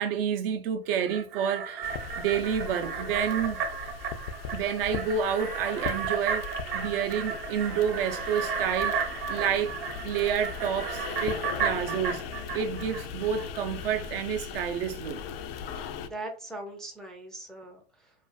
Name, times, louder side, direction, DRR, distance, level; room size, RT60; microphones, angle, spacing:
voice 1, 0.0-3.6 4.5-9.8 10.0-12.2 12.5-15.2, right 8 dB, 65° right, 0.5 m, -29 dB
sound 1, 0.9-13.5 13.8-13.9, right 6 dB, 45° right, 0.9 m, -34 dB
sound 2, 1.8-16.1, left 6 dB, 70° left, 0.4 m, -39 dB
voice 2, 16.0-18.1, right 2 dB, ahead, 0.4 m, -40 dB
2.4 x 2.3 x 2.4 m
hypercardioid pair, 100°, 31 cm